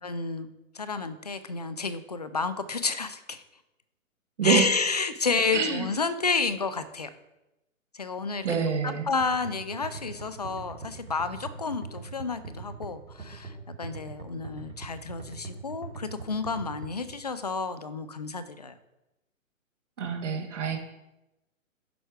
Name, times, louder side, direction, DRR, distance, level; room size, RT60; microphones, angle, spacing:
voice 1, 0.0-0.5 0.7-3.4 4.4-7.1 7.9-8.5 8.8-18.8, left 4 dB, 30° left, 12 dB, 0.4 m, -30 dB
voice 2, 4.4-4.7 5.5-5.9 8.4-9.1 20.0-20.8, right 6 dB, 60° right, 3 dB, 1.6 m, -26 dB
sound 1, 9.2-17.2, right 4 dB, 85° right, 2.7 m, -42 dB
11.0 x 4.5 x 5.0 m, 0.96 s
hypercardioid pair, 160°, 41 cm